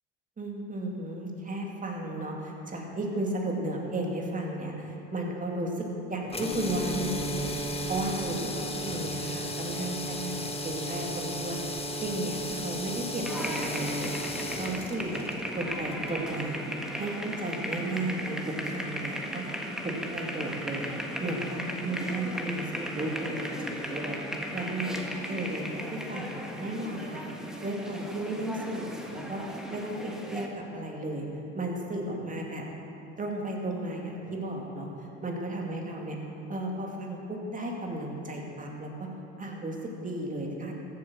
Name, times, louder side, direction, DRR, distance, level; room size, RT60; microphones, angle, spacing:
voice 1, 0.4-7.5 7.9-16.6 16.9-19.4 19.8-20.9 21.2-24.2 24.5-25.0 25.3-27.3 27.6-29.4 29.7-31.3 31.5-32.6 33.2-34.9 35.2-36.2 36.5-39.1 39.4-40.7, right 1 dB, 20° right, 0 dB, 2.5 m, -34 dB
sound 1, 6.3-16.4, equal, 15° left, 1.4 m, -35 dB
sound 2, 13.3-30.5, equal, ahead, 1.6 m, -36 dB
14.5 x 8.6 x 6.3 m, 2.9 s
hypercardioid pair, 75°, 37 cm